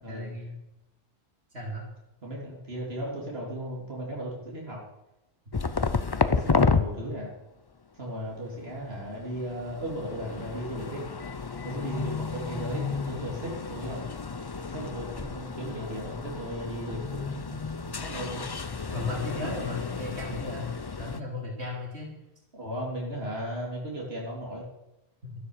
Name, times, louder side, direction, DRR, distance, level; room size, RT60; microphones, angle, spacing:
voice 1, 0.1-0.6 1.5-1.9 18.9-20.7 21.0-22.1 25.2-25.3, left 2 dB, 85° right, -1 dB, 3.7 m, -35 dB
voice 2, 2.2-4.8 6.3-7.3 8.0-11.0 11.6-14.0 14.7-18.5 22.5-24.7, equal, 70° right, -3 dB, 3.6 m, -36 dB
sound 1, 5.5-6.8 8.5-21.2, left 4 dB, 30° left, 0.5 m, -31 dB
13.0 x 11.5 x 6.6 m, 0.91 s
omnidirectional pair, 1.1 m